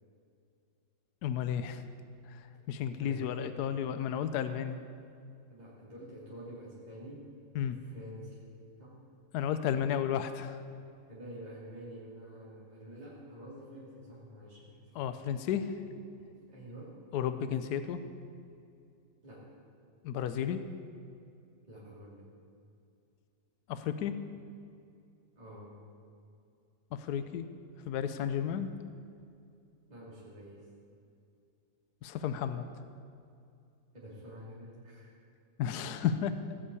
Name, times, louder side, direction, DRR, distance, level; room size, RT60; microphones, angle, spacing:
voice 1, 1.2-1.8 2.3-4.8 7.5-7.8 9.3-10.6 14.9-15.8 17.1-18.0 20.0-20.6 23.7-24.2 26.9-27.5 27.9-28.7 32.0-32.6 35.6-36.4, left 9 dB, 75° left, 10 dB, 1.2 m, -33 dB
voice 2, 3.0-3.6 5.5-7.3 7.7-8.4 8.8-9.0 11.1-14.8 16.2-17.0 19.2-19.5 21.7-22.3 25.3-25.8 29.9-30.7 33.9-35.1, right 1 dB, 25° right, -8 dB, 2.9 m, -48 dB
17.0 x 7.8 x 8.4 m, 2.5 s
omnidirectional pair, 1.8 m